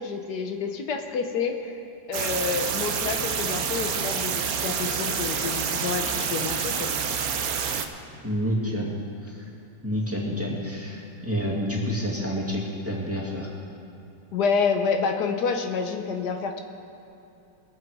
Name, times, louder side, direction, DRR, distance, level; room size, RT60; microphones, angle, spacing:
voice 1, 0.0-7.3 14.3-16.6, left 5 dB, 75° left, 5 dB, 1.5 m, -28 dB
sound 1, 2.1-7.9, right 7 dB, 65° right, 1.3 m, -28 dB
voice 2, 8.2-8.9 9.2-9.5 9.8-13.5, equal, 10° right, -4 dB, 2.0 m, -29 dB
22.0 x 7.8 x 4.7 m, 2.8 s
omnidirectional pair, 1.8 m